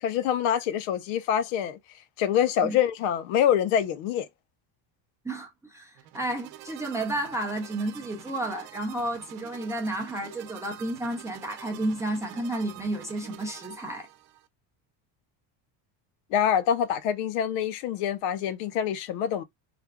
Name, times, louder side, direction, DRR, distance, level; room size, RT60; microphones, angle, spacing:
voice 1, 0.0-1.8 2.2-4.3 16.3-19.4, left 9 dB, 75° left, 0.7 m, -25 dB
voice 2, 5.2-14.1, right 1 dB, 5° right, 0.4 m, -32 dB
sound 1, 6.0-14.5, right 14 dB, 85° right, 0.8 m, -47 dB
3.3 x 2.3 x 3.4 m
cardioid pair, 165°, 46 cm